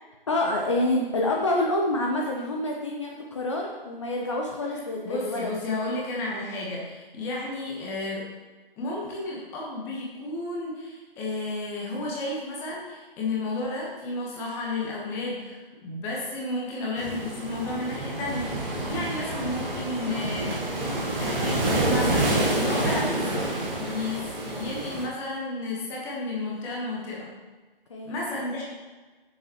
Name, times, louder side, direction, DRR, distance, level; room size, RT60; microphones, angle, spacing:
voice 1, 0.3-5.5 7.2-7.3 27.9-28.1, left 1 dB, 30° left, 0 dB, 0.9 m, -27 dB
voice 2, 5.0-8.2 8.8-20.9 21.1-23.4 23.7-27.3 28.0-28.6, left 2 dB, 10° left, -3 dB, 1.2 m, -32 dB
sound 1, 17.0-25.1, right 1 dB, 10° right, 0.8 m, -28 dB
14.5 x 7.1 x 3.1 m, 1.3 s
figure-of-eight pair, 150°, 29 cm